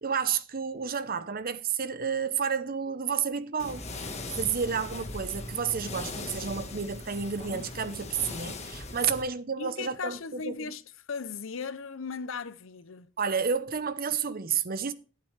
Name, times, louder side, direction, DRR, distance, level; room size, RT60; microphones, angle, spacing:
voice 1, 0.0-10.7 13.2-14.9, right 6 dB, 45° right, 0.9 m, -31 dB
sound 1, 3.6-9.2, left 2 dB, 35° left, 1.5 m, -39 dB
voice 2, 9.6-10.8 11.1-13.1, left 5 dB, 70° left, 0.7 m, -37 dB
11.5 x 8.9 x 3.3 m
head